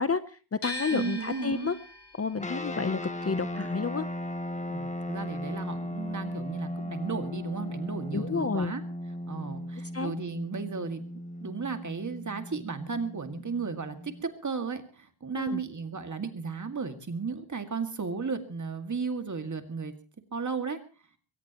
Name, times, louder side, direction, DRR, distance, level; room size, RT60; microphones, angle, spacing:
voice 1, 0.0-1.7 2.2-4.1 8.1-8.7 9.9-10.1 15.3-15.6, left 5 dB, 30° left, 12 dB, 0.8 m, -30 dB
sound 1, 0.6-6.6 6.9-8.2, equal, 60° left, 7.3 m, -43 dB
voice 2, 0.9-1.7 4.7-8.8 9.3-11.0 11.4-20.0 20.3-20.8, right 4 dB, 35° right, 7 dB, 2.2 m, -34 dB
sound 2, 2.4-14.2, equal, 15° left, 1.6 m, -37 dB
22.0 x 18.5 x 3.0 m, 0.35 s
wide cardioid pair, 130°, 48 cm